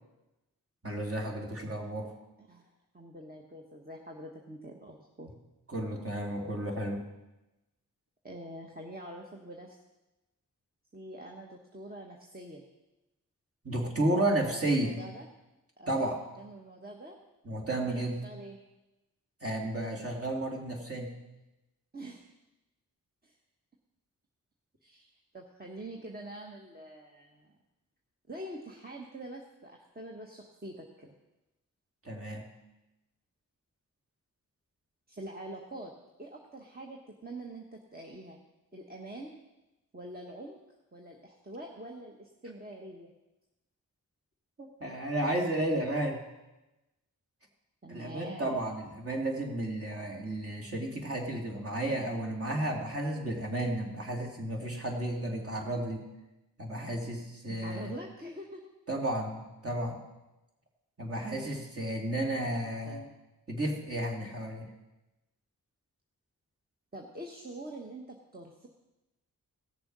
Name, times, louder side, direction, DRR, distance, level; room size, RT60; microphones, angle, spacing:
voice 1, 0.8-2.1 5.7-7.0 13.6-15.0 15.9-16.2 17.4-18.2 19.4-21.1 32.0-32.5 44.8-46.2 47.9-56.0 56.6-57.9 58.9-60.0 61.0-63.0 63.5-64.7, right 1 dB, 40° right, 0 dB, 2.9 m, -32 dB
voice 2, 2.4-5.3 8.2-9.8 10.9-12.6 14.5-15.3 15.8-16.1 16.4-17.2 17.9-18.6 21.9-22.3 23.2-23.3 24.8-27.6 28.3-31.1 35.1-35.9 36.2-38.4 38.7-39.4 39.9-40.6 40.9-43.1 47.8-48.5 57.5-58.6 62.3-63.1 66.9-68.7, right 1 dB, 25° right, 0 dB, 1.4 m, -45 dB
16.5 x 6.8 x 5.5 m, 1.0 s
cardioid pair, 50°, 35 cm